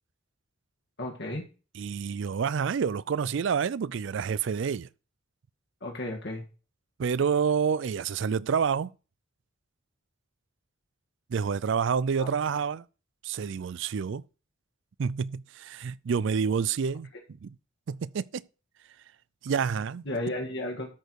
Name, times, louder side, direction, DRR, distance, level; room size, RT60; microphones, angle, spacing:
voice 1, 1.0-1.4 5.8-6.4 12.2-12.3 20.1-20.9, left 1 dB, 55° left, 1.8 m, -33 dB
voice 2, 1.7-4.9 7.0-8.9 11.3-12.8 13.2-14.2 15.0-17.1 17.4-17.5 17.9-18.4 19.4-20.0, right 6 dB, 60° right, 0.4 m, -28 dB
13.0 x 4.5 x 4.7 m
head